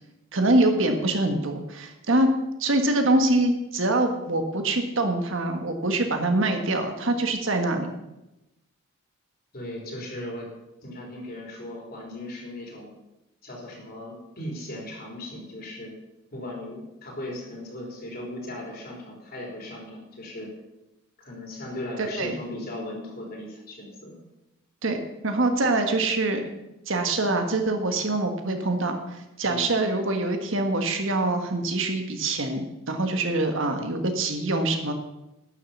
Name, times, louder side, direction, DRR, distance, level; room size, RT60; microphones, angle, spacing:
voice 1, 0.3-2.3 2.6-7.9 22.0-22.3 24.8-25.0 25.2-26.5 26.9-34.9, right 2 dB, 60° right, 5 dB, 1.5 m, -24 dB
voice 2, 9.5-10.5 10.8-12.9 13.4-15.9 16.3-20.5 21.2-24.2 29.4-29.7, left 1 dB, 45° left, -1 dB, 3.7 m, -37 dB
11.5 x 7.6 x 7.2 m, 0.93 s
head